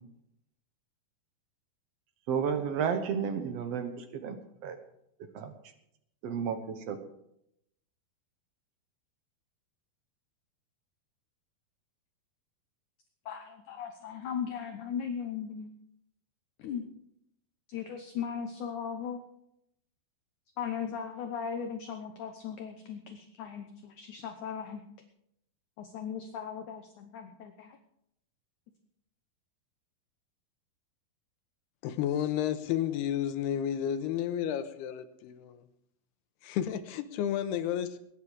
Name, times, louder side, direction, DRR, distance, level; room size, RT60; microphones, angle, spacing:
voice 1, 2.3-3.9 4.2-4.3 4.6-4.7 5.3-5.5 6.2-6.6 6.9-7.0, right 7 dB, 70° right, 7 dB, 1.5 m, -31 dB
voice 2, 13.3-15.7 16.6-16.9 17.7-19.2 20.6-24.8 25.8-27.8, left 7 dB, 70° left, 6 dB, 2.0 m, -38 dB
voice 3, 31.8-35.6 36.4-38.0, left 10 dB, 90° left, 10 dB, 3.0 m, -31 dB
21.0 x 10.0 x 5.0 m, 0.76 s
omnidirectional pair, 4.6 m